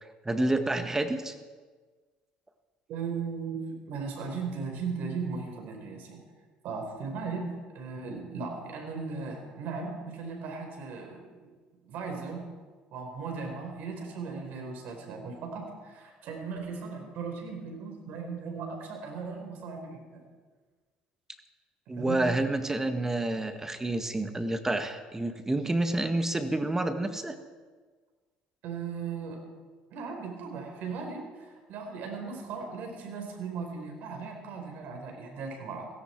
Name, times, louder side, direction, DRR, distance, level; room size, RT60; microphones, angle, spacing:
voice 1, 0.2-1.3 21.9-27.4, right 2 dB, 15° right, 8 dB, 1.6 m, -29 dB
voice 2, 2.9-6.2 6.6-7.5 7.7-11.2 11.9-12.4 12.9-20.2 21.9-22.3 28.6-29.5 29.9-35.9, right 5 dB, 70° right, 3 dB, 4.6 m, -37 dB
17.0 x 16.5 x 4.7 m, 1.4 s
supercardioid pair, 80°, 3 cm